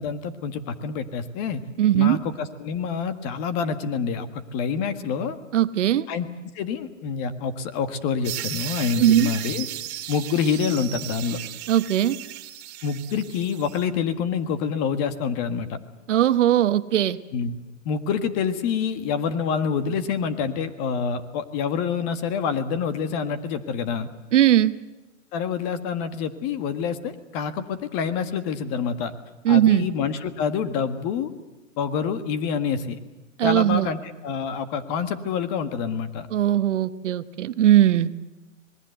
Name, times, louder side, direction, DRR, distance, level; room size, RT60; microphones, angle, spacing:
voice 1, 0.0-1.6 1.9-5.4 6.1-6.3 6.5-9.7 10.1-11.4 12.8-15.8 17.3-17.5 17.8-24.1 25.3-29.1 29.5-31.3 31.8-33.0 33.4-36.3, left 6 dB, 30° left, 10 dB, 1.7 m, -27 dB
voice 2, 1.8-2.2 5.5-6.1 9.0-9.3 11.7-12.2 16.1-17.2 24.3-24.8 29.4-29.9 33.4-33.9 36.3-38.1, right 12 dB, 65° right, 13 dB, 1.1 m, -19 dB
sound 1, 8.2-13.8, right 13 dB, 25° right, 2.0 m, -35 dB
26.0 x 20.5 x 8.0 m, 1.0 s
hypercardioid pair, 140°, 39 cm